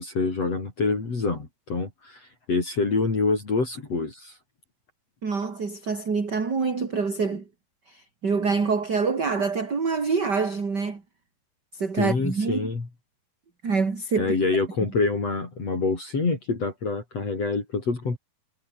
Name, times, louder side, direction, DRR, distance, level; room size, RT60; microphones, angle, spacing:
voice 1, 0.0-4.4 12.0-12.9 14.2-18.2, left 3 dB, 35° left, 5.6 m, -26 dB
voice 2, 5.2-7.4 7.9-11.0 11.7-12.7 13.6-14.4, right 4 dB, 25° right, 2.9 m, -26 dB
omnidirectional pair, 5.1 m